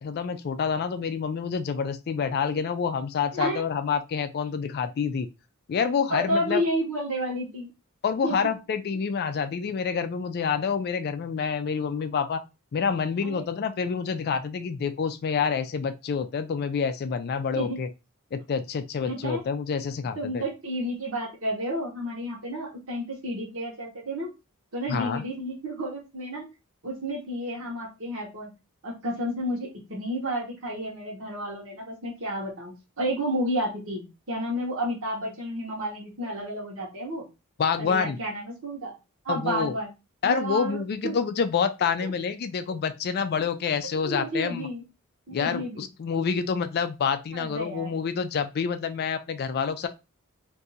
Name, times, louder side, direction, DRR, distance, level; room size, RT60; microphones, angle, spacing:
voice 1, 0.0-5.3 5.7-6.6 8.0-12.4 12.7-17.9 18.3-20.4 24.9-25.2 37.6-38.2 39.3-39.7 40.2-44.7 45.3-49.9, left 6 dB, 45° left, 0.3 m, -27 dB
voice 2, 6.1-7.7 8.2-8.3 13.2-13.4 17.5-17.8 19.0-19.4 20.1-24.3 24.7-26.4 26.8-28.5 28.8-37.3 37.8-38.9 39.2-39.9 40.2-41.1 42.0-42.1 44.0-44.8 45.3-45.8 47.3-47.9, equal, 65° right, 1.1 m, -31 dB
2.6 x 2.5 x 4.0 m
head